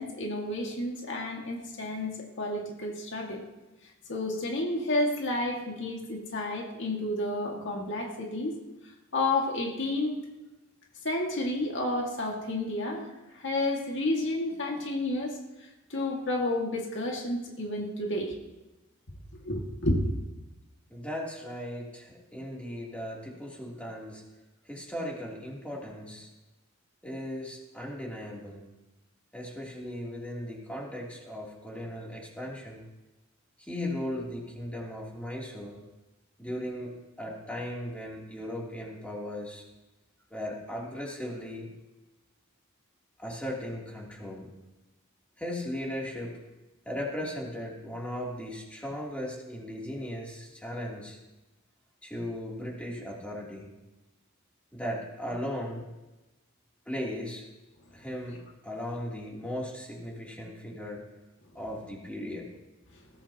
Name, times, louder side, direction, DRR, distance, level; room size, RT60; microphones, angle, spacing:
voice 1, 0.0-3.4 4.1-8.6 9.1-10.2 11.0-15.4 15.9-18.4 19.4-20.0, left 2 dB, 60° left, 0 dB, 2.1 m, -31 dB
voice 2, 20.9-24.2 24.6-26.3 27.0-28.6 29.3-32.8 33.6-35.8 36.4-36.9 37.2-39.6 40.3-41.7 43.2-44.5 45.4-46.3 46.8-51.2 52.0-53.7 54.7-55.8 56.9-57.4 57.9-61.1 61.5-62.5, left 1 dB, 5° left, -4 dB, 3.1 m, -37 dB
20.5 x 15.0 x 3.0 m, 1.1 s
head